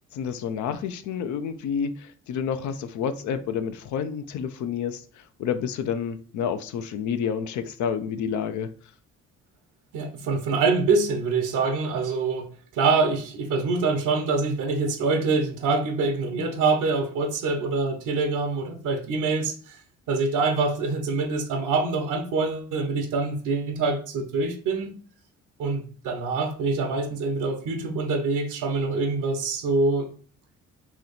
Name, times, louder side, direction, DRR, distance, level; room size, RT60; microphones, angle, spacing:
voice 1, 0.1-8.7, left 7 dB, 75° left, 0.5 m, -29 dB
voice 2, 9.9-19.8 20.1-24.9 25.6-30.1, right 3 dB, 85° right, 0.9 m, -25 dB
3.1 x 2.9 x 4.0 m
cardioid pair, 90°, 30 cm